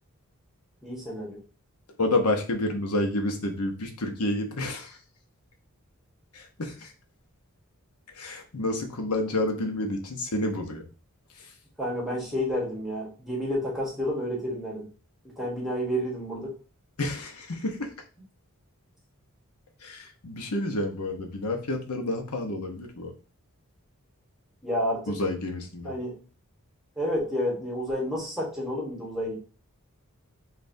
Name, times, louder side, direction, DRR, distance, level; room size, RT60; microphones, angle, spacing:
voice 1, 0.8-1.4 11.8-14.9 15.4-16.5 24.6-25.2 25.8-26.2 27.0-29.4, equal, ahead, -3 dB, 1.2 m, -30 dB
voice 2, 2.0-5.0 6.3-6.9 8.1-10.8 11.4-11.5 17.0-17.9 19.8-23.1 25.1-25.9, left 2 dB, 85° left, 4 dB, 0.9 m, -29 dB
5.2 x 2.5 x 2.6 m, 0.36 s
head